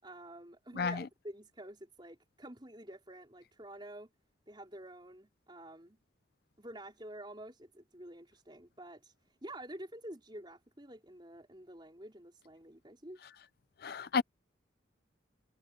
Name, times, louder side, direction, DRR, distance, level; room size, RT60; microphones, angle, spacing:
voice 1, 0.0-4.1 4.5-6.0 6.6-9.1 9.4-13.2, right 1 dB, 25° right, 4.6 m, -49 dB
voice 2, 0.8-1.1 13.8-14.2, left 5 dB, 50° left, 0.4 m, -32 dB
head